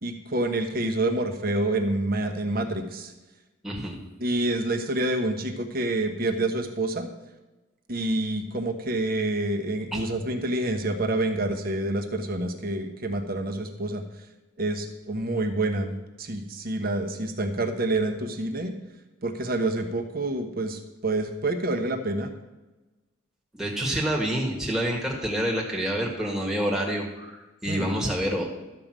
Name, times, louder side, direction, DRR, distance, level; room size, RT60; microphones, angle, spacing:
voice 1, 0.0-3.1 4.2-7.1 7.9-14.0 14.6-15.9 16.2-18.7 19.2-22.3 27.7-27.9, right 2 dB, 45° right, 5 dB, 1.2 m, -27 dB
voice 2, 3.6-4.0 9.9-10.0 23.5-28.4, equal, ahead, -3 dB, 1.5 m, -27 dB
12.5 x 5.3 x 7.5 m, 1.1 s
head